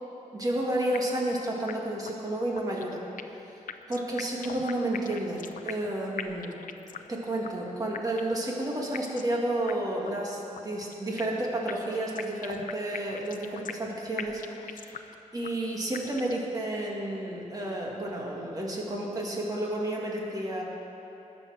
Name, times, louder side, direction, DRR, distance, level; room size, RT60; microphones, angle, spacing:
voice 1, 0.3-3.0 3.9-6.5 7.1-15.0 15.3-20.6, right 1 dB, 25° right, -2 dB, 2.2 m, -31 dB
sound 1, 0.9-1.4 1.7-1.8 2.1-2.2 2.6-3.4 3.7-5.9 6.2-7.2 7.4-7.5 7.9-8.5 8.9-9.4 9.7-9.8 10.1-10.2 10.5-11.4 11.7-13.9 14.2-15.2 15.4-15.5 15.9-16.5, left 8 dB, 75° left, 0.6 m, -39 dB
20.5 x 7.4 x 6.4 m, 3.0 s
wide cardioid pair, 155°, 14 cm